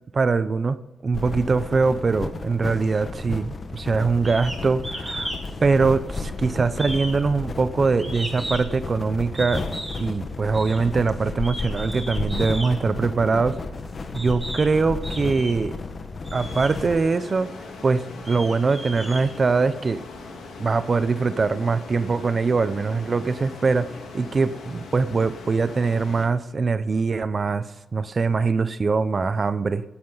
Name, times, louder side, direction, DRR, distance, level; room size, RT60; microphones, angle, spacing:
voice 1, 0.1-5.3 5.6-9.6 10.0-13.6 14.1-15.7 16.3-17.5 17.8-20.0 20.6-29.8, right 4 dB, 35° right, 14 dB, 0.6 m, -23 dB
sound 1, 1.1-17.0, left 3 dB, 40° left, 1.4 m, -33 dB
sound 2, 4.2-4.6 4.8-5.4 5.7-6.4 6.8-8.8 9.3-10.0 10.5-10.8 11.3-12.7 13.5-13.6 14.1-14.7 15.0-15.7 16.2-16.7 17.4-17.5 18.0-19.8, right 1 dB, 10° right, 4.3 m, -35 dB
sound 3, 16.3-26.3, left 3 dB, 80° left, 3.0 m, -40 dB
16.5 x 10.0 x 4.0 m, 1.1 s
cardioid pair, 110°, 0 cm